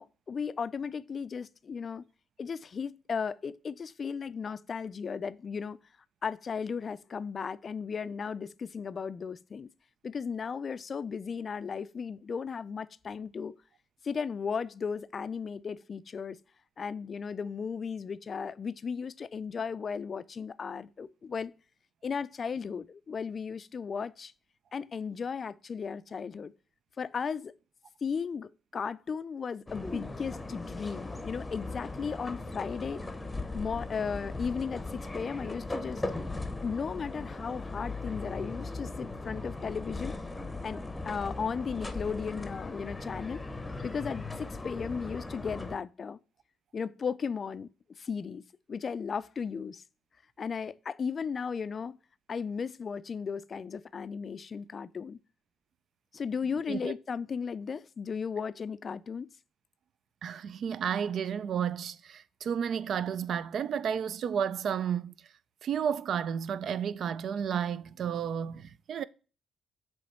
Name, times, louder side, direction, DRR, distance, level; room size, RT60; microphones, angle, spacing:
voice 1, 0.0-2.0 2.4-5.8 6.2-9.7 10.0-13.5 14.0-16.4 16.8-21.5 22.0-24.3 24.7-26.5 27.0-27.5 28.0-33.0 33.5-36.0 36.6-40.2 40.6-43.4 43.8-46.2 46.7-48.4 48.7-49.8 50.4-52.0 52.3-55.2 56.1-59.3, left 6 dB, 45° left, 0.3 m, -35 dB
sound 1, 29.7-45.8, left 2 dB, 15° left, 0.7 m, -38 dB
voice 2, 60.2-65.1 65.6-69.0, right 8 dB, 65° right, 0.3 m, -32 dB
7.3 x 3.1 x 4.3 m
cardioid pair, 90°, 0 cm